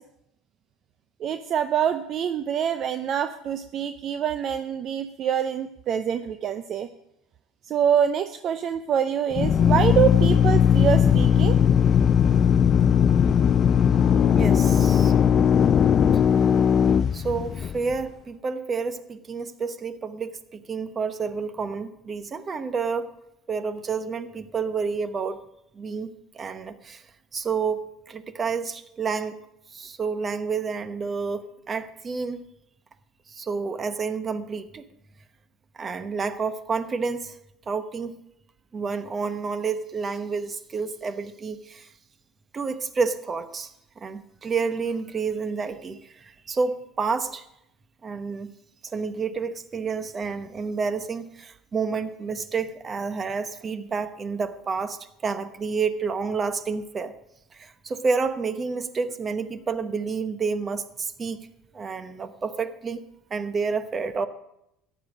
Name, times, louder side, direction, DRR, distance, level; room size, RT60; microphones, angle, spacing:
voice 1, 1.2-6.9 7.7-11.6 14.6-14.7, right 8 dB, 50° right, 10 dB, 0.6 m, -25 dB
Drill, 9.3-17.9, left 8 dB, 40° left, 0.4 m, -19 dB
voice 2, 14.3-15.1 17.1-23.1 23.5-25.4 25.8-26.1 26.3-27.0 27.3-27.8 28.1-29.3 29.7-32.4 33.3-34.8 35.8-37.3 37.7-38.1 38.7-41.9 42.5-43.7 44.0-47.4 48.0-48.5 48.9-57.1 57.6-61.5 61.7-63.0 63.3-64.3, right 5 dB, 30° right, 12 dB, 1.1 m, -29 dB
14.0 x 10.0 x 5.1 m, 0.81 s
hypercardioid pair, 70°, 0 cm